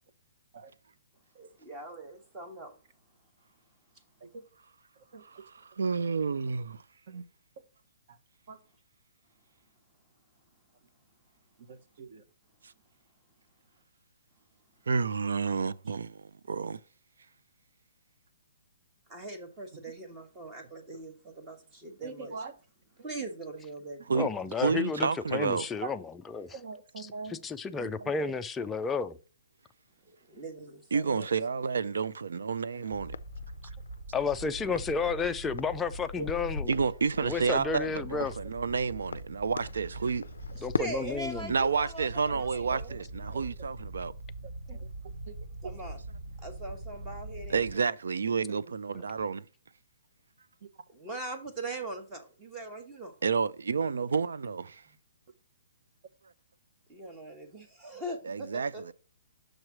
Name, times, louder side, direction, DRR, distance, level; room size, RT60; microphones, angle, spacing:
voice 1, 1.3-2.7 19.1-22.3 23.0-24.0 30.0-31.3 40.5-42.9 43.2-43.5 45.6-46.0 46.4-47.8 48.5-48.6 50.9-53.1 56.9-58.9, right 2 dB, 15° right, 1.1 m, -41 dB
voice 2, 5.1-5.4 7.1-7.3 8.1-8.2 8.5-8.6 11.6-12.2 19.7-19.9 20.9-21.0 22.0-22.6 23.0-23.1 25.8-25.9 26.5-27.4 27.8-28.3 32.7-32.9 36.2-36.3 42.3-43.0 43.3-43.5 44.4-44.9 45.2-45.4 45.6-45.7 48.3-48.7 50.6-50.7, right 4 dB, 45° right, 1.0 m, -43 dB
voice 3, 5.8-6.8 12.6-12.7 14.9-16.8 24.1-24.3 24.6-25.7 30.9-33.1 36.7-40.3 41.5-44.1 47.5-49.5 53.2-54.8 58.2-58.9, right 5 dB, 90° right, 0.4 m, -30 dB
voice 4, 24.1-26.0 26.3-26.5 27.4-29.2 34.1-36.7 37.2-38.4 40.6-41.5, left 5 dB, 10° left, 0.3 m, -31 dB
sound 1, 32.6-41.0, left 5 dB, 90° left, 0.4 m, -40 dB
sound 2, 32.9-47.8, right 2 dB, 70° right, 2.5 m, -43 dB
6.4 x 3.2 x 5.8 m
hypercardioid pair, 165°, 0 cm